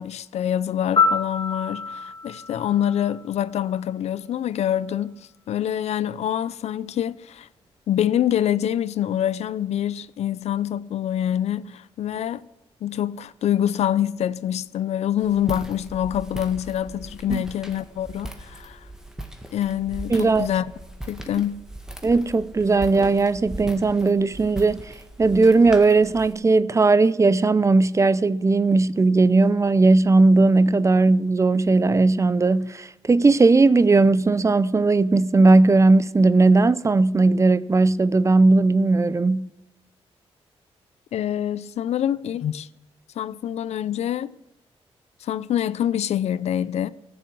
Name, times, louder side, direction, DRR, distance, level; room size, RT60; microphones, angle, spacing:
voice 1, 0.0-5.1 5.5-7.5 7.9-12.4 12.8-18.8 19.5-20.7 21.1-21.6 41.1-42.7 43.2-44.4 45.2-46.9, left 10 dB, 80° left, 0.5 m, -25 dB
Piano, 1.0-3.9 12.0-12.2, left 5 dB, 45° left, 2.5 m, -27 dB
Walk footsteps, 15.2-26.3, right 1 dB, 5° right, 1.8 m, -39 dB
voice 2, 20.1-20.5 22.0-24.8 25.2-39.5, right 3 dB, 25° right, 0.5 m, -18 dB
14.5 x 6.9 x 7.7 m
cardioid pair, 75°, 11 cm